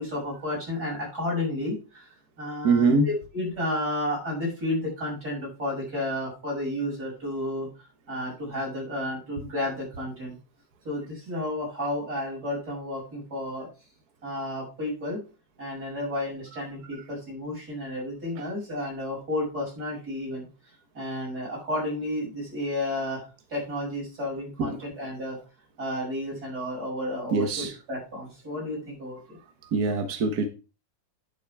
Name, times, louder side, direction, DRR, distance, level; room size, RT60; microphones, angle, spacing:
voice 1, 0.0-2.1 2.4-7.7 8.1-10.3 10.9-13.7 14.2-15.2 15.6-20.5 20.9-23.2 23.5-25.4 25.8-29.4, left 1 dB, 30° right, -3 dB, 7.1 m, -32 dB
voice 2, 2.6-3.1 24.6-24.7 27.3-27.7 29.7-30.5, right 3 dB, 60° right, 6 dB, 0.9 m, -23 dB
11.5 x 7.9 x 3.5 m, 0.33 s
omnidirectional pair, 3.3 m